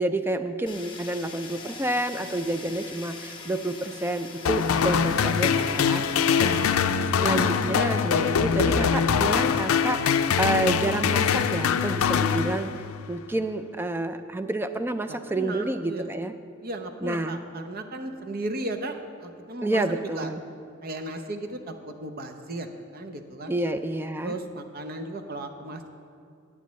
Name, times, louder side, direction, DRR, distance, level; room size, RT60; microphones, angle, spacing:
voice 1, 0.0-6.7 7.2-16.3 17.0-17.4 19.6-20.4 23.5-24.3, right 1 dB, 10° right, 9 dB, 0.3 m, -29 dB
Fire, 0.7-6.7, left 4 dB, 25° left, 1.0 m, -42 dB
sound 1, 4.5-13.0, left 6 dB, 80° left, 0.4 m, -23 dB
voice 2, 6.1-6.5 15.1-16.1 16.6-20.3 20.8-23.6 24.2-25.9, right 2 dB, 45° right, 6 dB, 0.7 m, -36 dB
17.0 x 8.3 x 3.2 m, 2.3 s
head